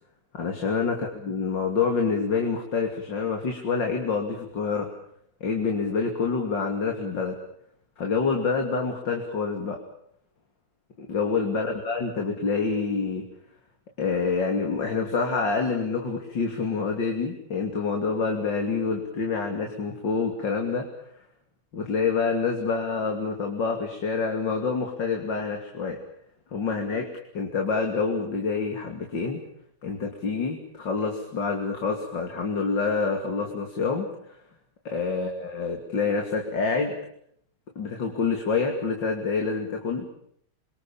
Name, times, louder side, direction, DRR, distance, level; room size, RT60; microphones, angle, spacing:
voice 1, 0.3-1.0 1.2-4.9 5.4-7.4 8.0-9.8 11.0-13.3 14.0-20.9 21.7-26.0 26.5-27.1 27.3-29.4 29.8-34.1 34.9-37.0 37.8-40.1, left 4 dB, 85° left, 3 dB, 3.5 m, -27 dB
28.0 x 24.0 x 7.3 m, 0.68 s
omnidirectional pair, 1.9 m